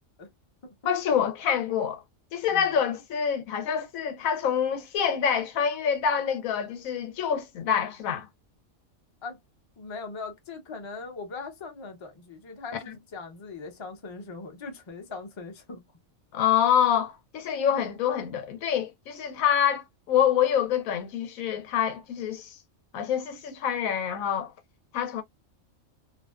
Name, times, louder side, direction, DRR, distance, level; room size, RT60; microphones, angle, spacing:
voice 1, 0.8-2.0 2.3-8.3 16.3-22.5 22.9-24.5 24.9-25.2, left 8 dB, 85° left, 1.0 m, -26 dB
voice 2, 9.8-15.8, left 4 dB, 30° left, 0.6 m, -40 dB
2.5 x 2.2 x 2.3 m
omnidirectional pair, 1.4 m